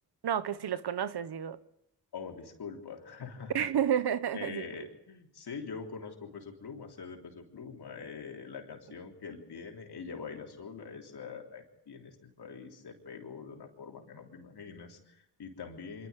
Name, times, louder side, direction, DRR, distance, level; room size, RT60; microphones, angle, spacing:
voice 1, 0.2-1.6 3.5-4.9, right 9 dB, 85° right, 1.1 m, -31 dB
voice 2, 2.1-3.7 4.3-16.1, left 5 dB, 85° left, 3.6 m, -44 dB
24.5 x 12.5 x 9.7 m
cardioid pair, 45°, 38 cm